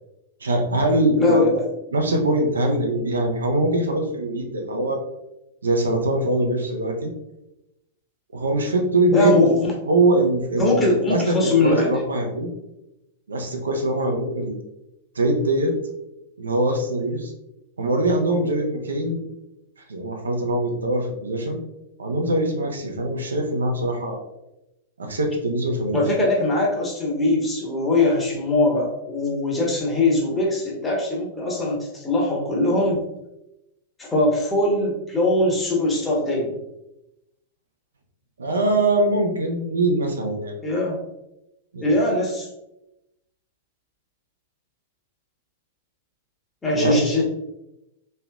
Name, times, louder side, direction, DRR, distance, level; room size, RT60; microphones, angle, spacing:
voice 1, 0.4-1.5 1.9-5.0 5.6-7.1 8.3-9.4 9.9-12.5 13.3-14.6 15.2-15.7 16.4-17.3 17.8-19.2 19.9-21.6 22.0-24.2 25.0-26.0 38.4-40.5 41.7-41.9 46.7-47.2, right 1 dB, 75° right, 3 dB, 0.5 m, -22 dB
voice 2, 1.2-1.5 9.1-9.7 10.6-11.9 25.9-33.0 34.0-36.5 40.6-41.0 41.8-42.5 46.6-47.2, left 2 dB, 15° left, -2 dB, 0.9 m, -21 dB
3.2 x 2.8 x 2.2 m, 0.89 s
figure-of-eight pair, 100°, 0 cm